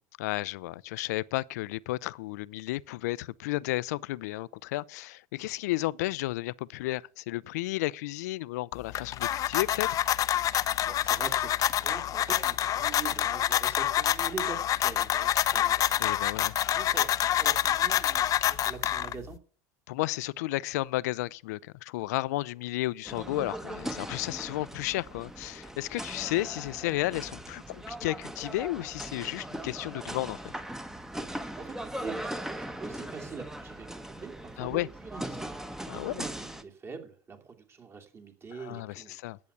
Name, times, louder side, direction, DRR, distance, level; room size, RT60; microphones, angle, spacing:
voice 1, 0.2-10.0 16.0-16.6 19.9-30.4 34.6-34.9 35.9-36.2 38.6-39.4, left 18 dB, 75° left, 0.5 m, -33 dB
sound 1, 8.7-19.4, left 11 dB, 40° left, 0.7 m, -27 dB
voice 2, 10.5-16.0 16.6-19.4 31.1-39.2, right 5 dB, 30° right, 2.9 m, -44 dB
sound 2, 23.0-36.6, right 1 dB, 5° right, 1.2 m, -39 dB
11.0 x 8.2 x 6.9 m
hypercardioid pair, 95°, 9 cm